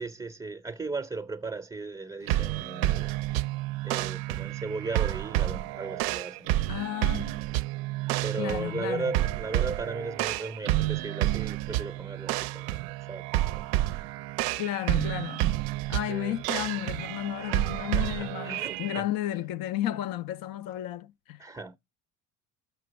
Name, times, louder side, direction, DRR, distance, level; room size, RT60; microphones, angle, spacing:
voice 1, 0.0-3.1 3.8-6.6 8.2-13.7 16.1-16.4 17.4-17.5 17.9-19.1 21.4-21.8, right 3 dB, 10° right, 0.6 m, -36 dB
sound 1, 2.3-19.0, right 16 dB, 70° right, 0.5 m, -30 dB
voice 2, 6.7-7.4 8.4-9.1 14.6-15.6 15.9-21.4, left 13 dB, 65° left, 0.6 m, -33 dB
5.9 x 5.9 x 5.1 m
supercardioid pair, 75°, 38 cm